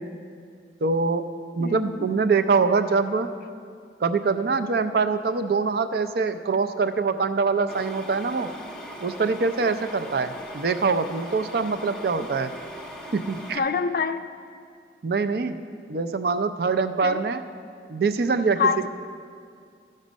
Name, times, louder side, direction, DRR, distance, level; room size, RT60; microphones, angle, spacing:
voice 1, 0.8-1.2 1.6-3.3 4.0-8.5 9.0-12.5 13.1-13.6 15.0-15.6 15.9-17.4 17.9-18.6, right 4 dB, 55° right, 10 dB, 0.4 m, -24 dB
voice 2, 1.6-2.1 12.2-12.3 13.5-14.2 17.0-17.2 18.6-18.9, left 5 dB, 50° left, 10 dB, 0.4 m, -26 dB
sound 1, 7.7-13.6, equal, 5° left, 0.6 m, -40 dB
13.5 x 5.3 x 5.1 m, 2.3 s
head